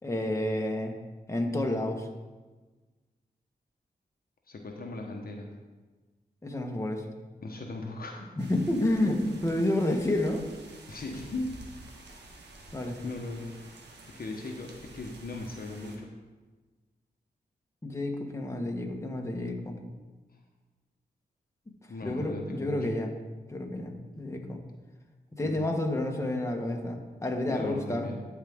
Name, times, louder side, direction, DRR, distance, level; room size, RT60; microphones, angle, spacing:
voice 1, 0.0-0.9 1.3-2.1 6.4-7.0 8.4-10.4 12.7-13.0 17.8-19.8 22.0-23.1 23.5-24.6 25.4-28.1, left 1 dB, 15° left, 2 dB, 1.5 m, -30 dB
voice 2, 4.5-5.5 7.4-8.3 10.9-11.5 13.0-13.5 14.1-16.1 21.9-22.8 25.4-25.7 27.5-28.2, left 2 dB, 60° left, 1 dB, 1.1 m, -38 dB
sound 1, 8.4-16.0, right 2 dB, 90° right, 1.3 m, -50 dB
14.0 x 4.9 x 3.7 m, 1.3 s
cardioid pair, 50°, 17 cm